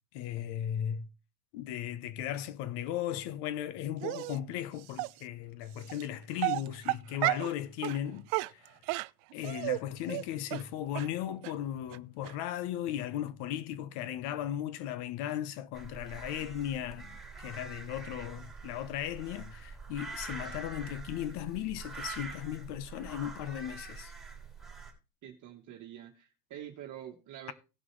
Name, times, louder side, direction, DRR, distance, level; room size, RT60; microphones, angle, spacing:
voice 1, 0.1-1.1 1.5-8.7 9.3-24.1, left 11 dB, 65° left, 1.1 m, -36 dB
Dog, 4.0-4.4 5.0-5.1 5.9-6.0 6.4-7.5 7.8-8.0 8.3-9.8 10.1-10.2 10.5-10.6 11.0-11.1 11.4-11.5 11.9-12.0 12.2-12.3, right 23 dB, 70° right, 0.5 m, -32 dB
sound 1, 15.7-24.9, right 4 dB, ahead, 3.6 m, -45 dB
voice 2, 25.2-27.5, right 11 dB, 45° right, 1.5 m, -46 dB
18.0 x 6.1 x 3.2 m
supercardioid pair, 125°, 43 cm